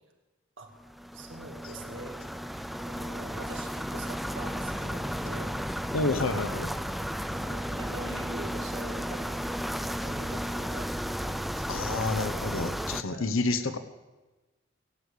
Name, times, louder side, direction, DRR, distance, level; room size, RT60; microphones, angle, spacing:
sound 1, 0.8-13.0, equal, ahead, 0.4 m, -34 dB
voice 1, 1.1-2.2 2.8-5.8 6.3-6.5 7.3-9.4 9.8-12.0 13.1-13.4, right 2 dB, 65° right, 2 dB, 2.3 m, -44 dB
voice 2, 5.9-6.7 11.7-13.8, left 3 dB, 80° left, 11 dB, 0.9 m, -29 dB
17.5 x 8.3 x 8.4 m, 1.2 s
head